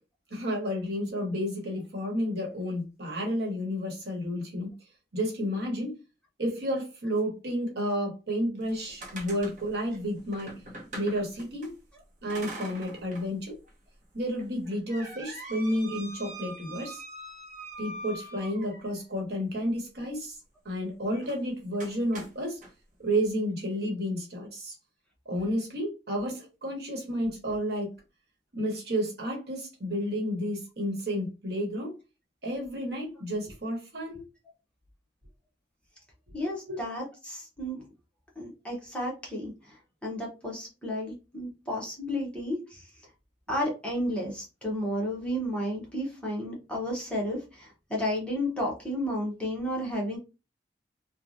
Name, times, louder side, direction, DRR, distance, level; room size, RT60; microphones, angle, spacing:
voice 1, 0.3-4.7 5.1-5.9 6.4-10.5 10.9-11.7 12.2-13.6 14.1-17.0 17.8-20.4 20.6-22.6 23.0-24.7 25.2-27.9 28.5-31.9 32.4-34.2 36.7-36.8, equal, 65° right, 0 dB, 1.1 m, -31 dB
sound 1, 8.6-11.7 12.3-13.3 13.7-13.8 14.4-19.1 21.2-21.4 21.8-22.7, right 2 dB, 45° right, 0.8 m, -43 dB
voice 2, 36.3-37.8 38.4-42.8 43.5-50.2, equal, 5° left, -3 dB, 0.9 m, -32 dB
3.1 x 2.1 x 2.6 m, 0.28 s
head